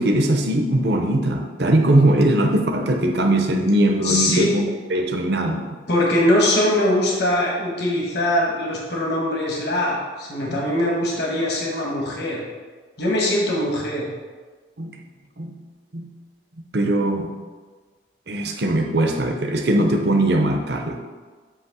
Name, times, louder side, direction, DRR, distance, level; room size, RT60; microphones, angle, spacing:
voice 1, 0.0-5.6 10.5-10.6 14.8-14.9 15.4-15.5 15.9-16.1 16.7-17.3 18.3-21.0, right 1 dB, 60° right, 3 dB, 0.8 m, -20 dB
voice 2, 4.0-4.5 5.9-12.4 13.0-14.1, left 1 dB, 60° left, -2 dB, 1.5 m, -21 dB
8.2 x 3.1 x 6.1 m, 1.4 s
head